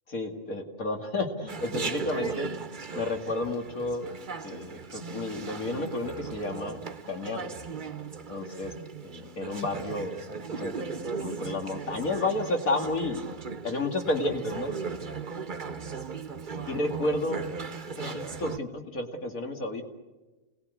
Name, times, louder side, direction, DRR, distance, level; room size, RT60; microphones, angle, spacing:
voice 1, 0.1-2.6 2.9-4.1 4.4-6.8 7.1-7.5 8.3-8.7 9.0-10.7 11.2-13.3 13.6-14.8 16.7-17.4 18.0-19.8, left 2 dB, 90° left, 3 dB, 2.8 m, -31 dB
Chatter, 1.5-18.6, right 5 dB, 40° right, 1.0 m, -37 dB
29.5 x 19.0 x 8.3 m, 1.2 s
omnidirectional pair, 1.4 m